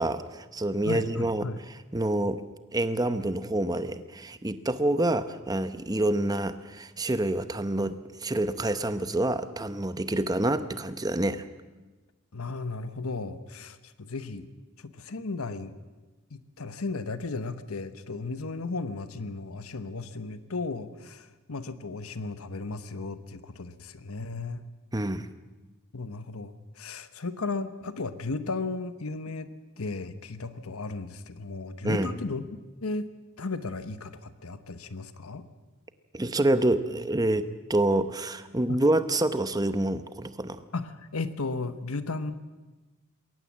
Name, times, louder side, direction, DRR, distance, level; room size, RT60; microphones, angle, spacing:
voice 1, 0.0-1.4 1.9-2.4 2.7-11.4 24.9-25.3 31.8-32.1 36.1-40.6, right 1 dB, 20° right, 12 dB, 0.8 m, -27 dB
voice 2, 0.8-1.6 12.3-14.5 14.8-15.7 16.3-24.7 25.9-33.1 33.4-35.4 38.7-38.8 40.7-42.3, left 3 dB, 85° left, 12 dB, 1.1 m, -35 dB
21.5 x 18.0 x 7.4 m, 1.2 s
head